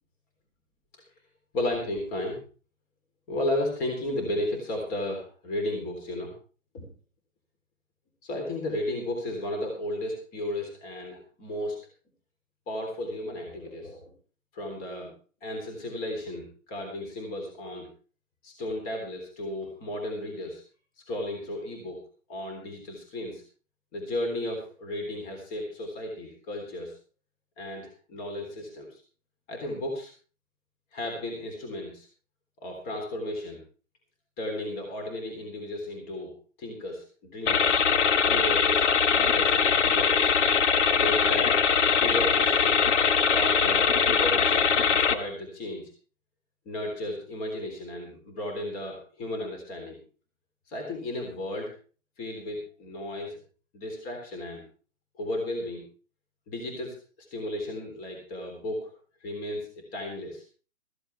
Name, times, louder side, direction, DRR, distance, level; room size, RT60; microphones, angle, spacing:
voice 1, 1.5-2.4 3.3-6.3 6.7-6.9 8.2-11.8 12.7-14.1 14.5-15.1 15.4-17.9 18.4-20.6 21.1-22.0 22.3-23.4 23.9-26.9 27.6-29.0 29.5-30.1 30.9-32.1 32.6-33.6 34.4-36.3 36.6-37.7 38.2-40.3 40.9-41.6 42.0-42.8 43.3-45.9 46.7-50.0 50.7-51.7 52.2-53.4 53.7-54.6 55.2-55.9 56.5-57.0 57.3-58.9 59.2-60.4, left 1 dB, 20° left, 2 dB, 3.5 m, -34 dB
sound 1, 37.5-45.1, left 6 dB, 60° left, 1.2 m, -22 dB
15.0 x 14.5 x 3.4 m, 0.38 s
figure-of-eight pair, 130°, 39 cm